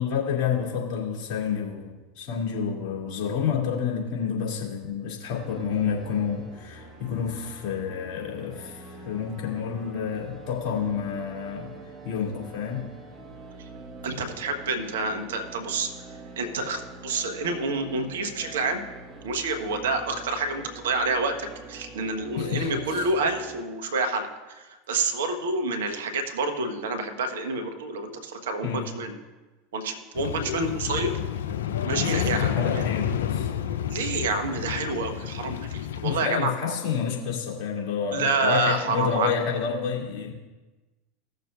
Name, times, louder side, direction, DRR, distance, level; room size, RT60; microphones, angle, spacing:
voice 1, 0.0-11.7 12.0-12.9 22.3-23.1 28.6-28.8 32.0-33.5 36.0-40.3, left 7 dB, 50° left, -3 dB, 2.5 m, -29 dB
sound 1, 5.3-23.6, right 3 dB, 35° right, 1.3 m, -44 dB
voice 2, 14.0-15.9 16.4-18.8 19.2-29.1 29.7-31.2 31.8-32.8 33.9-36.5 38.1-39.3, right 3 dB, 75° right, 6 dB, 1.1 m, -28 dB
sound 2, 30.1-36.2, left 10 dB, 75° left, 0.7 m, -29 dB
17.0 x 6.7 x 2.4 m, 1.2 s
hypercardioid pair, 85°, 0 cm